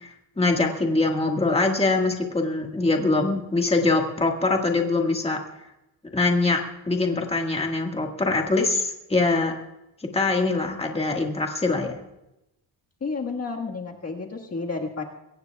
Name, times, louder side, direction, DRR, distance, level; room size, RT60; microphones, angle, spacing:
voice 1, 0.0-5.4 6.1-9.5 10.1-11.9, left 3 dB, 15° left, 1 dB, 1.7 m, -23 dB
voice 2, 13.0-15.0, left 4 dB, 35° left, 0 dB, 1.7 m, -31 dB
23.0 x 18.0 x 2.3 m, 0.90 s
cardioid pair, 125°, 43 cm